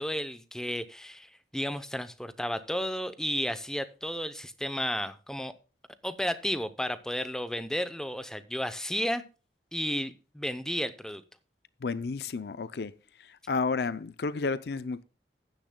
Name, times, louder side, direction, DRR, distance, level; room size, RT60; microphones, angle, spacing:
voice 1, 0.0-5.5 6.0-9.2 9.7-11.2, equal, 5° left, 0.7 m, -33 dB
voice 2, 11.8-12.9 13.2-15.0, left 4 dB, 65° left, 0.5 m, -31 dB
15.0 x 10.0 x 2.2 m
head